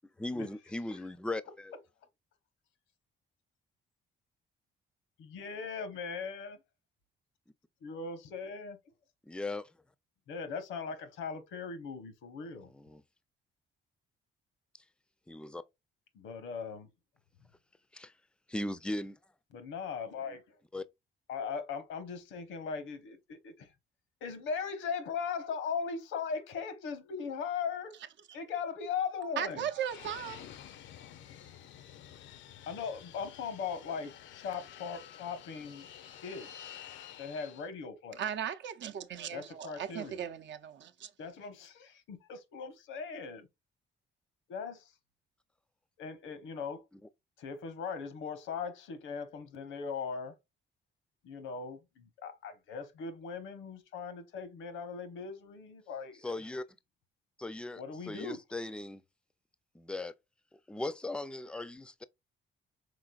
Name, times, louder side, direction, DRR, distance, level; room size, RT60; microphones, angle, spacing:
voice 1, 0.2-1.7 9.2-9.7 12.8-13.0 15.3-15.6 17.9-18.1 18.5-19.2 20.7-20.8 56.2-56.6 57.4-57.8 58.1-59.0 59.7-60.1 60.7-62.0, left 2 dB, 5° left, 0.4 m, -38 dB
voice 2, 5.2-6.6 7.8-8.8 10.3-12.7 16.1-16.9 19.5-20.6 21.3-23.7 24.2-28.0 28.3-29.7 32.7-35.9 36.2-36.8 37.2-38.2 39.3-40.2 41.2-43.5 44.5-44.9 46.0-46.9 47.4-50.4 51.2-56.4 57.7-58.4, left 5 dB, 90° left, 1.0 m, -39 dB
voice 3, 29.4-30.5 38.1-41.1, right 9 dB, 65° right, 0.6 m, -37 dB
Fixed-wing aircraft airplane, 29.9-37.7, left 10 dB, 70° left, 0.5 m, -50 dB
5.1 x 3.8 x 2.3 m
cardioid pair, 90°, 20 cm